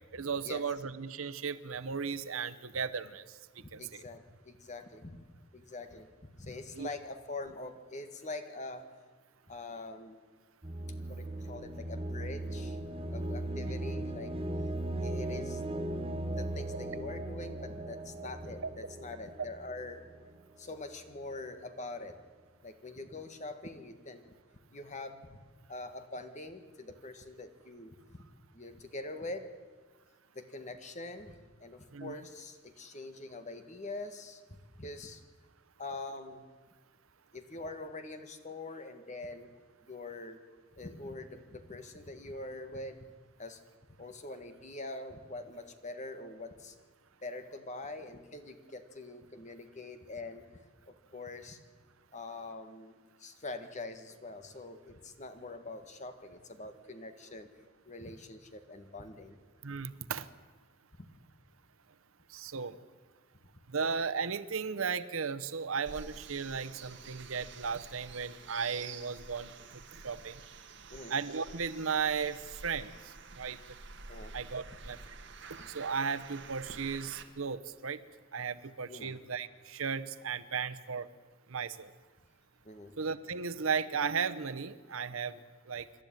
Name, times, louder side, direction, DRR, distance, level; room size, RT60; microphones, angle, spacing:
voice 1, 0.1-4.0 6.7-6.9 18.6-18.7 31.9-32.1 59.6-60.3 62.3-62.8 63.7-70.4 71.1-73.6 74.3-75.1 75.7-78.0 78.3-81.1 81.5-81.9 83.0-85.4 85.7-85.9, right 6 dB, 85° right, 13 dB, 0.9 m, -35 dB
voice 2, 3.6-5.2 5.5-8.9 9.5-10.2 11.1-12.8 13.1-14.7 15.0-15.6 16.4-20.0 20.6-22.2 22.6-24.4 24.7-25.4 25.7-28.2 28.5-29.5 30.3-34.4 34.8-35.2 35.8-36.5 37.3-39.5 39.8-40.4 40.8-43.0 43.4-43.6 44.0-46.7 47.2-50.5 50.9-51.6 52.1-52.9 53.2-57.5 57.8-59.4 61.0-61.1 70.9-71.1 74.1-74.4 78.9-79.2 82.6-82.9, left 2 dB, 35° left, 8 dB, 1.6 m, -44 dB
sound 1, 10.6-20.4, right 1 dB, 30° right, 1.1 m, -38 dB
sound 2, 65.9-77.2, right 4 dB, 60° right, 1.7 m, -49 dB
26.5 x 12.0 x 9.1 m, 1.5 s
head